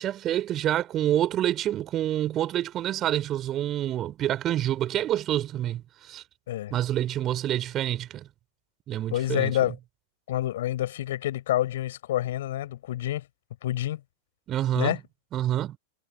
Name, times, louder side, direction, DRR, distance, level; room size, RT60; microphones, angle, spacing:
voice 1, 0.0-6.2 6.7-8.3 8.9-9.5 14.5-15.0 15.3-15.8, right 12 dB, 30° right, 4.4 m, -27 dB
voice 2, 9.1-9.8 10.3-13.3 13.6-14.0 14.7-15.0, left 13 dB, 55° left, 6.3 m, -28 dB
figure-of-eight pair, 90°, 0 cm